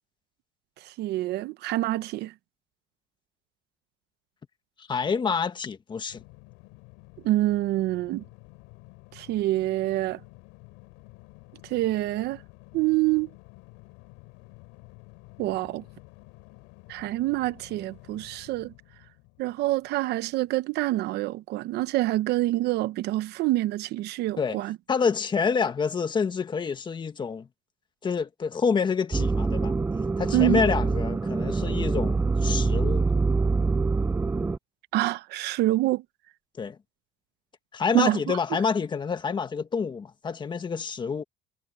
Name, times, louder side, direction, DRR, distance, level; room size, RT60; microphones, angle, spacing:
voice 1, 0.8-2.3 7.2-8.2 9.1-10.2 11.6-12.4 12.7-13.3 15.4-15.8 16.9-18.7 19.4-24.8 30.3-30.6 34.9-36.0 37.9-38.4, right 16 dB, 60° right, 0.8 m, -26 dB
voice 2, 4.9-6.2 24.4-24.6 24.9-27.5 28.0-29.7 30.2-33.1 36.6-36.8 37.7-41.2, left 5 dB, 25° left, 1.6 m, -27 dB
sound 1, 6.1-20.5, left 27 dB, 85° left, 5.0 m, -51 dB
sound 2, 29.1-34.6, right 4 dB, 10° right, 0.4 m, -25 dB
cardioid pair, 135°, 19 cm